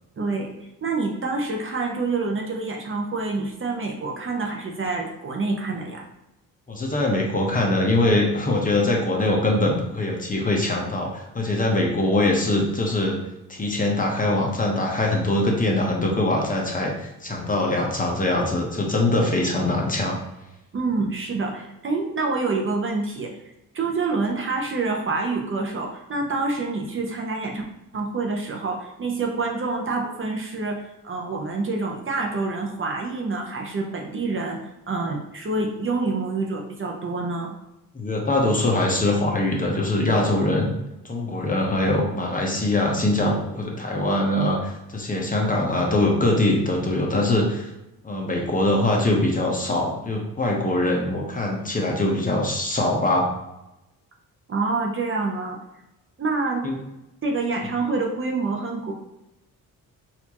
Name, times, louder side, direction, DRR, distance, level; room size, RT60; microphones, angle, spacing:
voice 1, 0.2-0.5 0.8-6.1 20.7-23.3 23.7-27.6 27.9-34.6 34.9-37.5 54.5-55.6 56.2-56.7 57.2-58.9, right 3 dB, 35° right, 0 dB, 0.7 m, -27 dB
voice 2, 6.7-13.2 13.5-20.2 37.9-40.7 41.0-47.7 48.0-53.3 56.6-56.8, left 1 dB, 25° left, -1 dB, 0.8 m, -22 dB
4.2 x 2.6 x 2.9 m, 0.94 s
cardioid pair, 95°, 35 cm